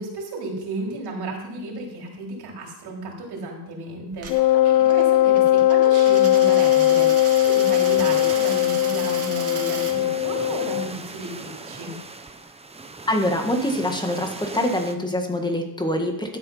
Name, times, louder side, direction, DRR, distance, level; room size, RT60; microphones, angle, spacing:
voice 1, 0.0-11.9, right 2 dB, 65° right, -2 dB, 4.0 m, -33 dB
Coin (dropping), 4.1-9.9, right 4 dB, 35° right, 2.3 m, -36 dB
Wind instrument woodwind instrument, 4.3-10.9, left 13 dB, 65° left, 0.8 m, -19 dB
sound 1, 6.3-15.0, right 3 dB, 15° right, 0.8 m, -39 dB
voice 2, 13.1-16.4, left 1 dB, 10° left, 3 dB, 1.6 m, -24 dB
12.5 x 8.0 x 5.6 m, 0.86 s
cardioid pair, 125°, 40 cm